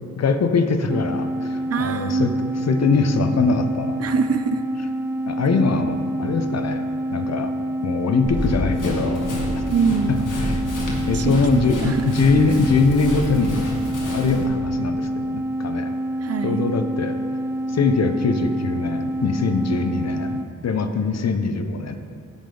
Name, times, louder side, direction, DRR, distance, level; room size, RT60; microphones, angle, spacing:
voice 1, 0.2-4.0 5.3-6.9 7.1-7.5 7.8-9.3 10.4-10.6 11.1-13.7 14.1-15.9 16.4-17.2 17.7-20.4 20.6-22.0, left 4 dB, 55° left, 8 dB, 0.7 m, -22 dB
sound 1, 0.9-20.5, right 1 dB, 10° right, 0.4 m, -27 dB
voice 2, 1.7-2.4 4.0-4.6 9.7-10.3 11.1-11.4 11.8-12.1 12.5-12.6 16.2-16.7 19.8-20.0, right 6 dB, 50° right, 10 dB, 0.6 m, -24 dB
Run, 8.2-14.4, left 1 dB, 85° left, 1.6 m, -28 dB
14.5 x 5.2 x 3.8 m, 2.3 s
cardioid pair, 80°, 31 cm